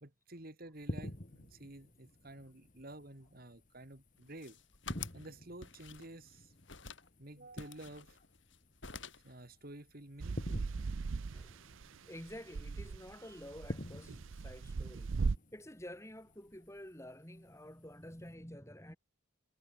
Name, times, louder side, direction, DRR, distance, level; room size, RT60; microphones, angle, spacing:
voice 1, 0.0-4.6 5.1-6.5 7.2-8.2 9.2-10.7, right 1 dB, 45° right, 2.3 m, -51 dB
sound 1, 0.8-18.3, left 1 dB, 35° left, 2.5 m, -50 dB
sound 2, 4.2-5.3 5.6-6.3 6.7-7.1 7.6-8.6 8.8-9.3, left 6 dB, 60° left, 4.7 m, -48 dB
sound 3, 10.2-12.0 12.3-15.4, right 4 dB, 65° right, 0.5 m, -38 dB
voice 2, 11.3-11.7 12.0-15.1 15.5-19.0, left 1 dB, 15° left, 6.2 m, -50 dB
head